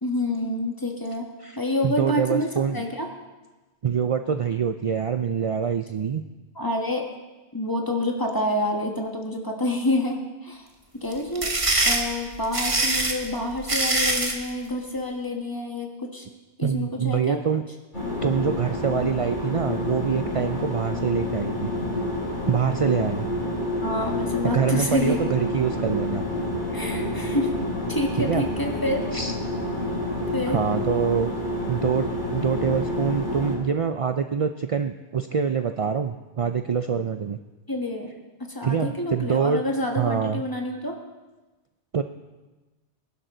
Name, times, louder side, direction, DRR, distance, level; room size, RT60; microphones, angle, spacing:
voice 1, 0.0-1.2 1.5-3.1 6.5-7.0 7.5-10.7 10.9-11.5 11.8-16.3 16.6-17.4 23.8-25.2 26.7-27.5 27.9-29.0 30.3-30.6 37.7-38.1 38.5-40.9, left 1 dB, 20° left, 1 dB, 1.6 m, -28 dB
voice 2, 1.8-2.8 3.8-6.2 16.6-17.6 18.2-21.7 22.5-23.3 24.4-26.2 28.2-28.4 29.1-29.3 30.5-31.3 31.7-37.4 38.6-39.6 40.0-40.4 41.9-42.0, right 7 dB, 55° right, 8 dB, 0.4 m, -25 dB
sound 1, 11.1-14.4, right 2 dB, 30° right, 1.3 m, -23 dB
sound 2, 17.9-33.5, left 1 dB, 75° left, 5.9 m, -28 dB
20.5 x 11.0 x 3.9 m, 1.2 s
omnidirectional pair, 1.2 m